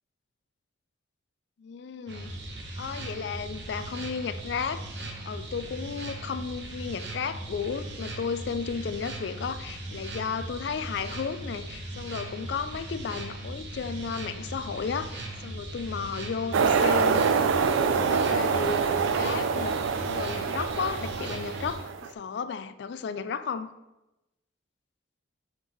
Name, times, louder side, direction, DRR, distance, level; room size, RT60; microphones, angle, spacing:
voice 1, 1.6-2.3 2.8-4.8 5.3-17.3 17.7-18.8 19.1-23.7, left 6 dB, 60° left, 12 dB, 0.3 m, -34 dB
sound 1, 2.1-21.8, right 1 dB, 60° right, 0.9 m, -38 dB
sound 2, 16.5-22.1, right 6 dB, 85° right, 0.4 m, -25 dB
4.6 x 4.4 x 4.9 m, 0.97 s
head